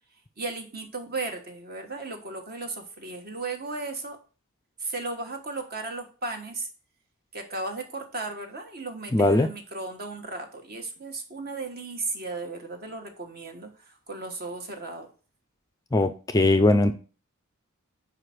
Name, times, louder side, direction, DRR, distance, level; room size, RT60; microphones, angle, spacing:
voice 1, 0.4-4.2 4.8-6.7 7.3-15.1, right 3 dB, 45° right, 5 dB, 1.3 m, -35 dB
voice 2, 9.1-9.5 15.9-16.9, left 2 dB, 15° left, 9 dB, 0.4 m, -20 dB
5.2 x 5.0 x 5.9 m, 0.36 s
head